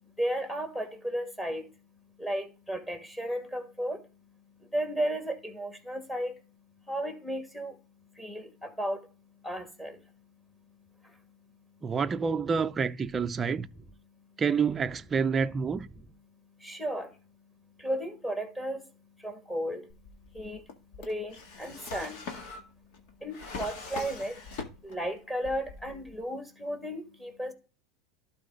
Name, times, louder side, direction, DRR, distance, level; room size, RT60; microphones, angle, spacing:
voice 1, 0.2-0.9 1.1-1.6 2.2-4.0 4.7-6.3 6.9-7.7 8.2-9.0 9.4-9.9 16.6-17.1 17.8-18.8 19.2-19.8 20.4-20.6 21.1-21.3 21.6-22.2 23.2-24.3 24.9-27.5, equal, 10° left, 2.2 m, -33 dB
voice 2, 11.8-13.7 14.4-15.9, right 6 dB, 25° right, 0.5 m, -28 dB
Drawer open or close, 19.9-25.1 25.4-26.2, left 4 dB, 65° left, 2.0 m, -42 dB
12.0 x 4.2 x 3.9 m
supercardioid pair, 115°, 0 cm